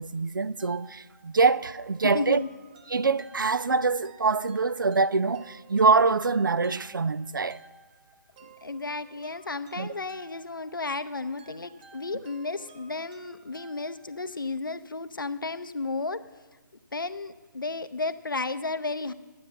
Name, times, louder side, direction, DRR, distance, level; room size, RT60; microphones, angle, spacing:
voice 1, 0.0-2.4 2.9-7.6 9.8-9.9, right 4 dB, 80° right, 0.4 m, -24 dB
sound 1, 0.6-14.4, right 4 dB, 25° right, 0.7 m, -55 dB
voice 2, 2.0-2.5 8.4-16.2 16.9-19.1, left 3 dB, 85° left, 0.7 m, -33 dB
12.0 x 8.4 x 7.0 m
figure-of-eight pair, 145°, 11 cm